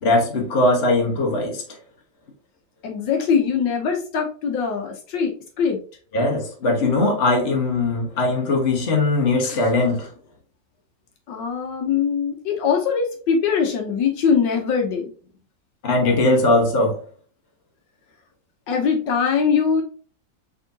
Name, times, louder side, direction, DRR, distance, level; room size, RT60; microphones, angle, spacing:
voice 1, 0.0-1.8 6.1-10.1 15.8-17.0, left 2 dB, 35° left, 1.3 m, -20 dB
voice 2, 2.8-5.8 11.3-15.1 18.7-19.8, left 6 dB, 70° left, 1.5 m, -22 dB
5.3 x 3.6 x 2.7 m
omnidirectional pair, 2.1 m